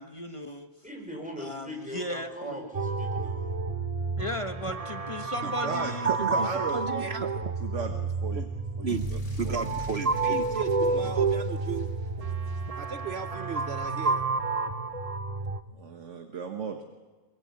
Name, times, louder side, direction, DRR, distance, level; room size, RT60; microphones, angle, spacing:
voice 1, 0.0-0.7 1.4-2.6 4.2-6.1, left 1 dB, 25° left, 7 dB, 1.2 m, -36 dB
voice 2, 0.8-3.5, left 1 dB, 5° right, 1 dB, 5.9 m, -40 dB
sound 1, 2.7-15.6, right 4 dB, 30° right, 1.0 m, -30 dB
voice 3, 5.6-7.3 7.6-8.5 8.8-9.2 9.4-9.6 15.7-16.8, right 5 dB, 75° right, 5 dB, 1.6 m, -35 dB
voice 4, 6.7-7.3 8.8-9.1 9.4-11.9 12.8-14.2, right 6 dB, 60° right, 9 dB, 1.2 m, -34 dB
sound 2, 8.9-13.1, left 1 dB, 75° left, 4.9 m, -43 dB
23.0 x 22.5 x 8.7 m, 1.3 s
omnidirectional pair, 1.3 m